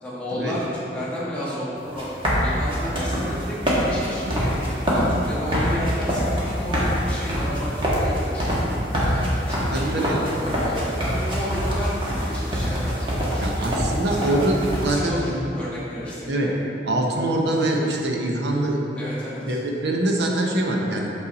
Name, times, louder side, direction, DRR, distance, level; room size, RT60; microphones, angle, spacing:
voice 1, 0.0-2.1 2.4-4.5 4.9-8.6 9.1-13.7 14.0-14.4 14.9-16.6 19.0-19.6, equal, 5° left, -9 dB, 1.5 m, -32 dB
sound 1, 1.8-14.9, equal, 30° right, 1.4 m, -24 dB
voice 2, 9.7-10.2 13.4-15.5 16.3-16.5 16.9-19.0 19.4-21.1, right 1 dB, 75° right, 0 dB, 0.8 m, -24 dB
6.7 x 5.5 x 4.0 m, 2.9 s
head